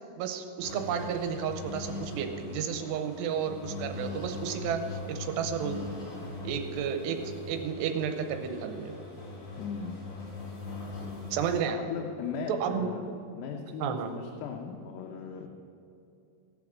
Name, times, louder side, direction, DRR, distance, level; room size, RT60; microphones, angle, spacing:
voice 1, 0.1-4.8 5.1-5.8 6.4-8.9 11.3-11.8 12.5-12.9 13.8-14.1, right 7 dB, 90° right, 7 dB, 2.9 m, -32 dB
sound 1, 0.6-11.6, left 3 dB, 50° left, 4.7 m, -41 dB
voice 2, 9.6-10.0 11.7-13.1 13.3-15.5, left 6 dB, 85° left, 1 dB, 2.9 m, -38 dB
17.5 x 6.0 x 6.2 m, 2.6 s
omnidirectional pair, 4.8 m